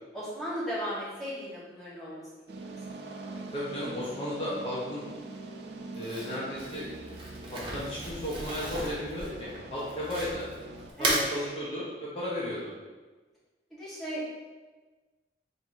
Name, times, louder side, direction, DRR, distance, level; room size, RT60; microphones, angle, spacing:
voice 1, 0.1-2.7 11.0-11.2 13.7-14.3, equal, ahead, -10 dB, 1.3 m, -36 dB
sound 1, 2.5-10.9, right 2 dB, 70° right, 0.4 m, -43 dB
voice 2, 3.5-5.0 5.9-6.8 7.5-10.4 11.0-12.7, left 1 dB, 30° left, -8 dB, 0.8 m, -34 dB
Crumpling crinkling, 5.9-10.5 10.9-11.3, right 1 dB, 30° right, 0.8 m, -34 dB
3.6 x 2.7 x 4.5 m, 1.3 s
head